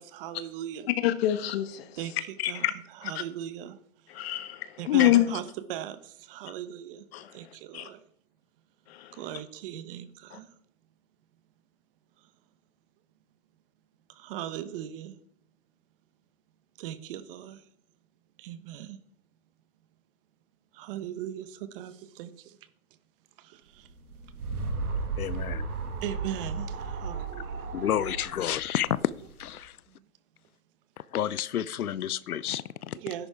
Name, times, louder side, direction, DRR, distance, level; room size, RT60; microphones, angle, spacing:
voice 1, 0.0-0.9 2.0-3.8 4.8-7.0 7.3-8.0 9.1-10.5 14.1-15.2 16.8-17.6 18.4-19.0 20.7-22.6 23.4-23.9 26.0-27.7 29.9-30.0 32.9-33.3, right 11 dB, 40° right, 1.1 m, -39 dB
voice 2, 1.0-1.9 2.4-2.7 3.0-3.2 4.1-5.3 7.1-7.3 7.7-7.9 8.9-9.1 10.3-10.4, left 13 dB, 45° left, 1.3 m, -26 dB
sound 1, 23.9-29.5, right 4 dB, 85° right, 2.1 m, -34 dB
voice 3, 25.2-25.7 27.7-28.9 29.4-29.7 31.1-33.0, left 10 dB, 80° left, 0.7 m, -30 dB
13.5 x 10.5 x 3.7 m
hypercardioid pair, 135°, 43 cm